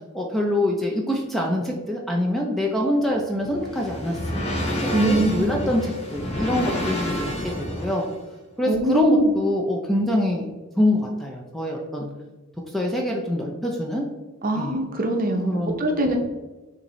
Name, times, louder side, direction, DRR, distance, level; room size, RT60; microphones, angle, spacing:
voice 1, 0.1-4.4 4.8-8.1 8.6-10.5 10.8-12.1 12.7-14.1 14.5-14.8 15.5-15.8 16.1-16.2, left 1 dB, ahead, -1 dB, 0.4 m, -25 dB
sound 1, 3.1-8.1, equal, 30° left, 0.8 m, -29 dB
voice 2, 4.9-5.6 8.7-9.3 14.4-16.2, right 1 dB, 40° right, 2 dB, 0.7 m, -22 dB
6.5 x 2.6 x 3.1 m, 1.2 s
head